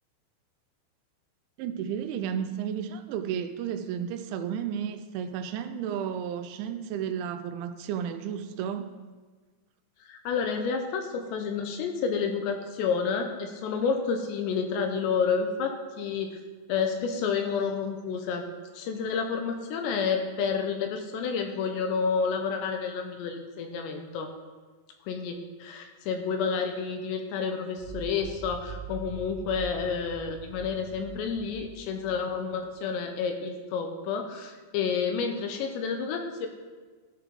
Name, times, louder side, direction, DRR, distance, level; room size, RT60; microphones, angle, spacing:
voice 1, 1.6-8.9, right 8 dB, 85° right, 8 dB, 3.0 m, -32 dB
voice 2, 10.0-16.4 16.7-18.4 18.7-24.3 25.1-36.5, left 5 dB, 80° left, 5 dB, 2.7 m, -30 dB
sound 1, 27.8-32.6, right 4 dB, 60° left, 1.4 m, -43 dB
14.0 x 4.9 x 5.2 m, 1.4 s
omnidirectional pair, 5.4 m